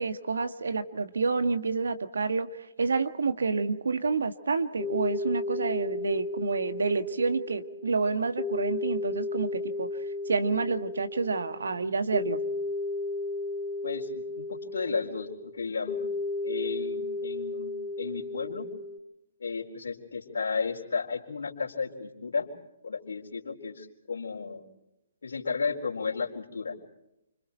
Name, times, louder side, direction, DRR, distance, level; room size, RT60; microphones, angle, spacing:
voice 1, 0.0-2.5 2.8-9.9 10.3-12.4, right 4 dB, 75° right, 9 dB, 1.7 m, -28 dB
sound 1, 4.8-19.0, left 2 dB, 20° left, 3.9 m, -34 dB
voice 2, 13.8-16.1 16.4-18.7 19.4-22.5 22.8-24.6 25.2-26.8, left 5 dB, 70° left, 0 dB, 4.4 m, -33 dB
29.0 x 26.0 x 4.5 m, 0.88 s
figure-of-eight pair, 130°, 0 cm